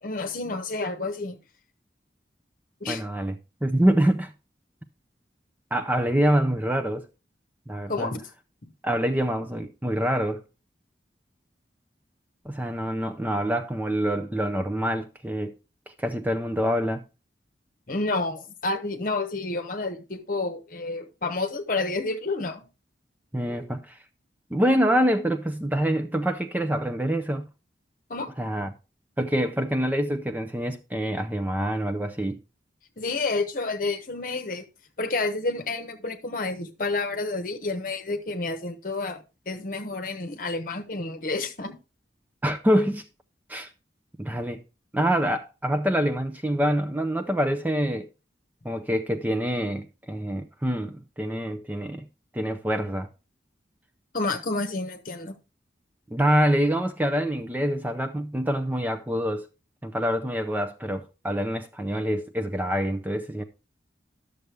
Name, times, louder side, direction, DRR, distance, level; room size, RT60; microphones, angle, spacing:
voice 1, 0.0-1.4 2.8-3.0 7.9-8.2 17.9-22.6 28.1-28.3 33.0-34.6 35.0-41.8 54.1-55.3, left 3 dB, 50° left, 1.0 m, -29 dB
voice 2, 2.9-4.3 5.7-7.1 7.7-8.1 8.8-10.4 12.4-15.6 16.0-17.0 23.3-24.0 24.5-27.5 28.4-28.7 29.2-32.4 42.4-43.0 43.5-43.7 44.2-44.6 44.9-48.1 48.6-52.1 52.3-53.1 56.1-59.5 59.8-63.4, equal, 10° right, 0.4 m, -26 dB
11.0 x 6.6 x 3.3 m
head